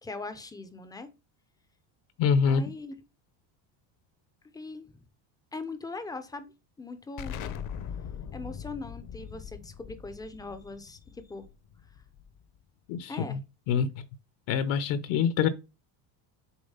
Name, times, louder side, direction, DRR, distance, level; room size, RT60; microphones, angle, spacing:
voice 1, 0.0-1.1 2.5-2.9 4.5-5.0 5.5-7.4 8.3-11.5 13.1-13.4, left 3 dB, 10° left, 0.4 m, -40 dB
voice 2, 2.2-2.6 12.9-13.4 13.7-14.1 14.5-15.5, left 6 dB, 65° left, 0.9 m, -25 dB
Explosion, 7.2-12.6, left 8 dB, 40° left, 0.7 m, -41 dB
7.2 x 3.9 x 5.5 m
cardioid pair, 160°, 49 cm